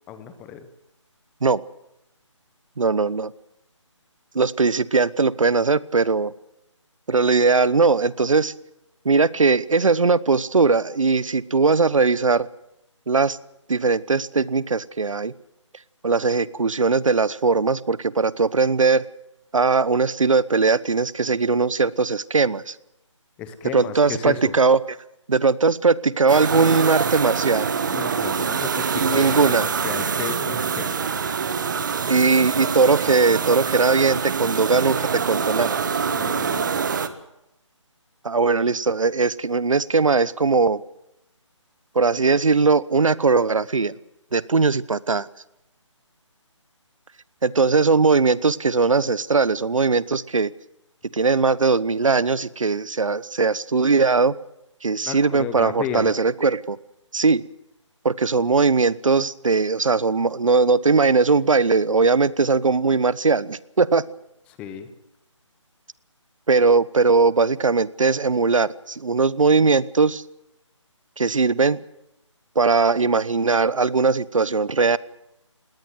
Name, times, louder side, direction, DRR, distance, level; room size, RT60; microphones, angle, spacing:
voice 1, 0.1-0.7 23.4-24.6 27.9-31.1 36.1-36.8 55.0-56.1 64.5-64.9, left 7 dB, 10° left, 11 dB, 0.9 m, -33 dB
voice 2, 2.8-3.3 4.3-6.3 7.1-8.5 9.0-12.5 13.1-13.4 13.7-15.3 16.0-19.0 19.5-22.7 23.7-24.8 25.3-27.7 28.9-29.6 32.0-35.8 38.2-40.8 41.9-43.9 44.3-45.3 47.4-50.5 51.1-54.3 54.8-56.8 57.1-57.4 58.0-64.0 66.5-70.2 71.2-71.8 72.5-75.0, right 4 dB, 80° right, 19 dB, 1.0 m, -19 dB
sound 1, 26.3-37.1, right 6 dB, 40° right, 1.4 m, -25 dB
20.0 x 18.5 x 7.8 m, 0.86 s
figure-of-eight pair, 165°, 16 cm